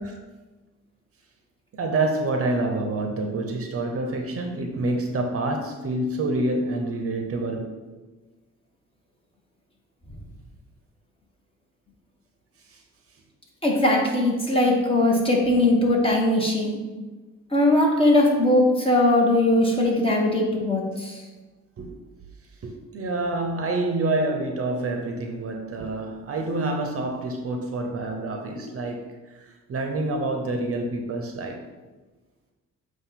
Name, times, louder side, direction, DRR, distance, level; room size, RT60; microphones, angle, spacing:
voice 1, 1.7-7.8 12.7-12.8 21.8-22.0 22.6-31.6, right 2 dB, 50° right, 3 dB, 0.9 m, -27 dB
voice 2, 13.6-16.8 17.5-21.2, left 1 dB, 20° left, -1 dB, 1.6 m, -20 dB
7.9 x 2.6 x 5.9 m, 1.2 s
cardioid pair, 90°, 30 cm